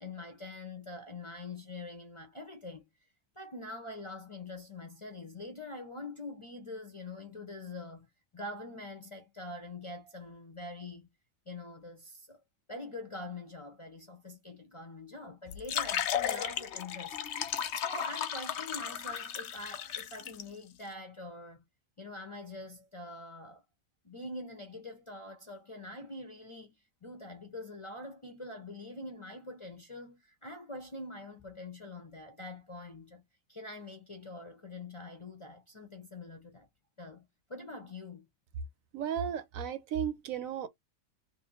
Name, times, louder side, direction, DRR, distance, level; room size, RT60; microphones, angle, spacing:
voice 1, 0.0-2.9 3.4-8.1 8.3-11.1 11.5-12.4 12.7-21.6 22.0-23.6 24.0-33.2 33.5-36.7 37.0-38.3, left 2 dB, 30° left, 0.6 m, -45 dB
sound 1, 15.5-20.4, left 9 dB, 60° left, 0.8 m, -35 dB
voice 2, 38.9-40.7, right 8 dB, 75° right, 1.1 m, -34 dB
3.1 x 2.6 x 4.0 m
omnidirectional pair, 1.5 m